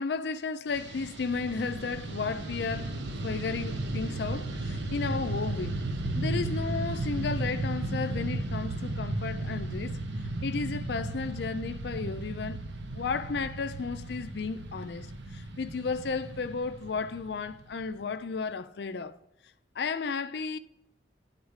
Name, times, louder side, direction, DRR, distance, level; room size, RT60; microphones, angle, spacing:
voice 1, 0.0-5.8 6.2-10.0 10.4-12.6 12.9-19.1 19.8-20.6, left 4 dB, 65° left, 0.5 m, -33 dB
Fixed-wing aircraft airplane, 0.7-18.1, right 2 dB, 80° right, 0.8 m, -35 dB
11.0 x 4.0 x 4.8 m
head